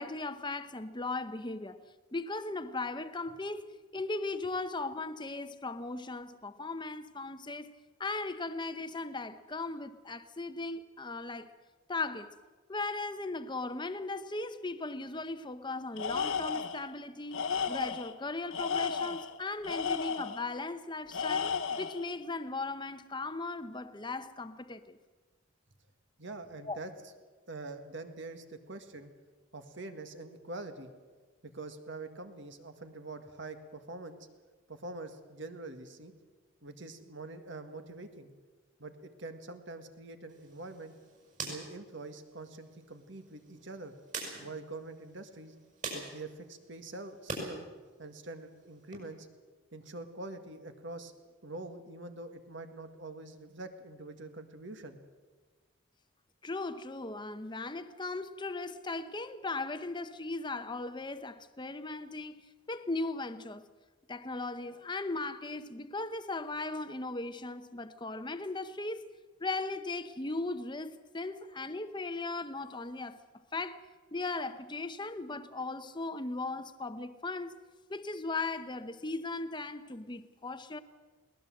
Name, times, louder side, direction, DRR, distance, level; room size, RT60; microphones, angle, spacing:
voice 1, 0.0-1.8 2.1-3.7 3.9-7.7 8.0-11.5 11.9-12.3 12.7-25.0 26.7-26.8 56.4-63.6 64.1-69.1 69.4-73.2 73.5-73.8 74.1-77.5 77.9-80.8, left 3 dB, 20° left, 0.9 m, -37 dB
Tools, 16.0-16.9 17.3-18.1 18.5-20.4 21.1-22.0, left 6 dB, 75° left, 1.1 m, -33 dB
voice 2, 26.2-26.9 27.5-29.1 29.5-30.9 31.4-34.2 34.7-36.1 36.6-38.3 38.8-40.9 41.4-43.9 44.4-45.5 45.9-47.7 48.0-49.3 49.7-51.1 51.4-55.0, right 2 dB, 60° right, 1.9 m, -45 dB
sound 1, 40.3-47.5 47.9-49.0, right 3 dB, 40° right, 6.1 m, -45 dB
21.5 x 19.0 x 7.7 m
head